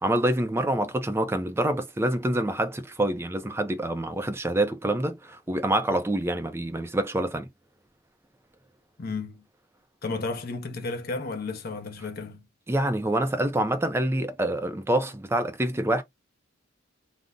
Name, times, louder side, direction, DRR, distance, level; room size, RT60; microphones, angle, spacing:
voice 1, 0.0-7.5 12.7-16.0, right 1 dB, 15° right, 0.4 m, -26 dB
voice 2, 9.0-9.4 10.0-12.4, left 3 dB, 50° left, 0.6 m, -33 dB
2.5 x 2.0 x 3.4 m
head